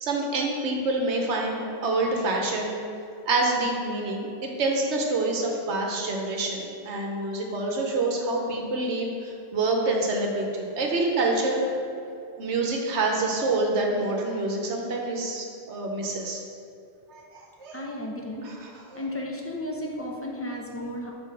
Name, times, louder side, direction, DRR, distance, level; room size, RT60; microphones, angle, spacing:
voice 1, 0.0-2.7 3.3-11.7 12.4-16.4 17.1-17.8 18.9-19.0, right 2 dB, 70° right, 1 dB, 1.1 m, -27 dB
voice 2, 17.7-18.5 18.9-21.1, left 1 dB, 15° left, -1 dB, 0.6 m, -33 dB
4.7 x 4.5 x 5.9 m, 2.6 s
omnidirectional pair, 1.2 m